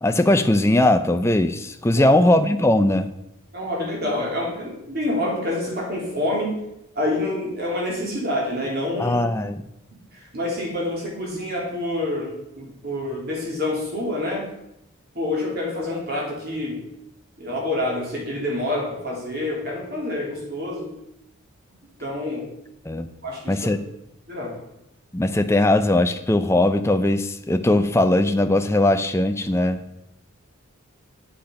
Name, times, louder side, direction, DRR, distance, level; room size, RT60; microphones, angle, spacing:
voice 1, 0.0-3.1 9.0-9.6 22.9-23.1 23.5-23.8 25.1-29.8, left 1 dB, 10° left, 8 dB, 0.5 m, -19 dB
voice 2, 3.5-6.6 6.9-9.2 10.1-14.5 15.1-16.9 17.4-20.9 22.0-22.5 23.2-23.6 24.3-24.6, left 1 dB, 45° right, -2 dB, 3.2 m, -27 dB
8.6 x 8.1 x 5.2 m, 0.84 s
head